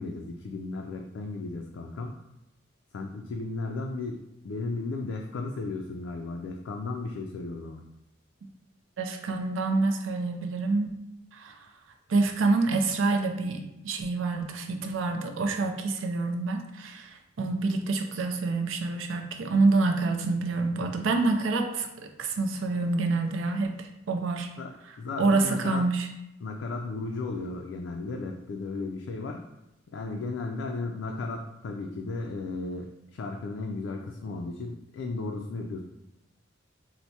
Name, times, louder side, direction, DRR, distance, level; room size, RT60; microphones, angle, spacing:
voice 1, 0.0-2.2 2.9-7.8 24.6-24.7 25.0-25.8 26.4-29.4 29.9-35.8, left 3 dB, 70° left, 1 dB, 0.3 m, -35 dB
voice 2, 9.0-10.9 11.3-11.6 12.1-24.5 25.2-26.1, right 3 dB, 80° right, 5 dB, 0.4 m, -27 dB
4.4 x 2.1 x 2.7 m, 0.92 s
head